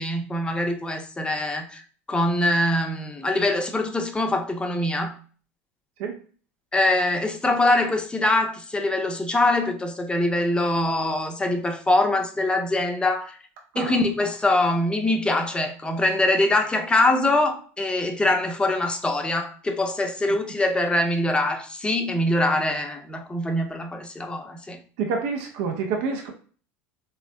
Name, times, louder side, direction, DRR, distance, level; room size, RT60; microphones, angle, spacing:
voice 1, 0.0-1.8 2.1-5.2 6.7-13.4 13.8-24.8, left 1 dB, 10° left, 0.5 m, -23 dB
voice 2, 25.0-26.3, right 5 dB, 70° right, 0.5 m, -28 dB
3.5 x 2.0 x 2.5 m
hypercardioid pair, 85°, 8 cm